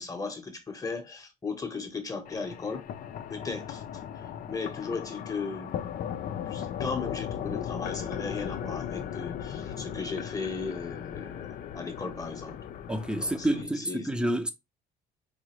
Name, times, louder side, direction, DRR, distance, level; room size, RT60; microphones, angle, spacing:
voice 1, 0.0-2.8 3.3-3.8 4.5-5.7 6.5-12.6 13.1-14.1, left 4 dB, 20° left, 1.0 m, -36 dB
sound 1, 2.3-13.6, left 9 dB, 55° left, 0.5 m, -37 dB
voice 2, 12.9-14.5, right 1 dB, 5° right, 0.7 m, -28 dB
4.8 x 2.5 x 3.0 m
cardioid pair, 110°, 17 cm